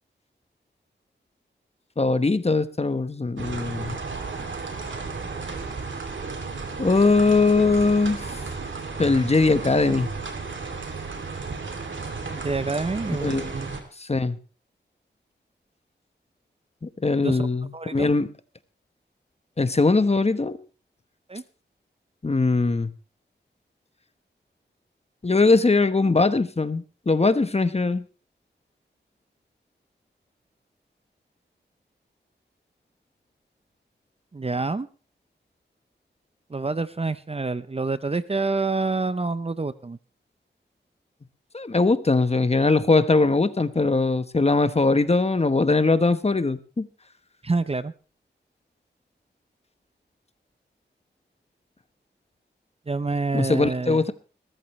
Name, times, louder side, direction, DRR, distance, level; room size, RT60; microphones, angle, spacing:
voice 1, 2.0-4.0 6.8-8.2 9.0-10.1 13.2-13.5 14.1-14.4 16.8-18.3 19.6-20.6 22.2-22.9 25.2-28.0 41.5-46.9 53.3-54.1, left 3 dB, 35° left, 12 dB, 1.1 m, -21 dB
sound 1, 3.4-13.8, right 4 dB, 80° right, 2.9 m, -33 dB
voice 2, 12.3-13.7 17.2-17.5 17.7-18.1 21.3-21.4 34.3-34.9 36.5-40.0 47.4-47.9 52.9-54.0, right 3 dB, 30° right, 14 dB, 0.7 m, -27 dB
21.0 x 13.5 x 3.2 m, 0.36 s
wide cardioid pair, 75°, 19 cm